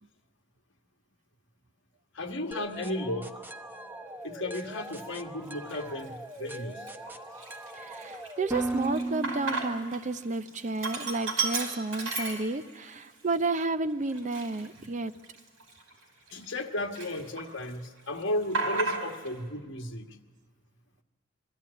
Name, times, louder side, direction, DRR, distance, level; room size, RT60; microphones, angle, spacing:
voice 1, 2.1-3.4 4.2-6.8 16.3-20.2, left 1 dB, 60° left, 5 dB, 1.5 m, -34 dB
sound 1, 2.5-10.3, right 1 dB, 10° right, 0.8 m, -38 dB
Sink (filling or washing), 4.7-4.9 5.5-6.1 6.5-6.6 6.9-10.0 10.3-12.9 13.3-13.4 14.1-16.6 16.9-17.7 18.0-19.3, right 3 dB, 75° right, 4.8 m, -34 dB
voice 2, 7.7-15.1, right 3 dB, 35° right, 12 dB, 0.6 m, -31 dB
23.0 x 13.5 x 9.6 m, 1.5 s
head